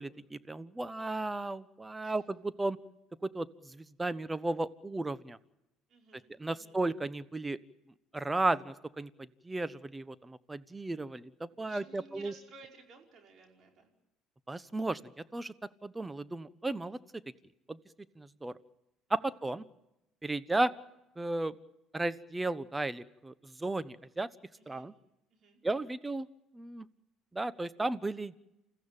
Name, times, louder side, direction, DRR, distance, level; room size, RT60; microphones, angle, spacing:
voice 1, 0.0-2.8 3.3-5.4 6.4-7.6 8.1-12.3 14.5-15.0 15.3-15.5 15.8-17.0 17.7-17.8 18.2-18.5 19.1-19.6 20.2-20.7 21.2-21.6 21.9-24.3 24.7-24.9 25.6-26.3 26.5-26.9 27.3-28.3, right 2 dB, 15° right, 16 dB, 1.1 m, -34 dB
voice 2, 5.9-6.8 11.4-13.9 19.1-19.4 24.6-24.9 25.3-25.6, right 4 dB, 55° right, 2 dB, 5.1 m, -56 dB
29.0 x 15.0 x 9.0 m, 0.93 s
hypercardioid pair, 65°, 0 cm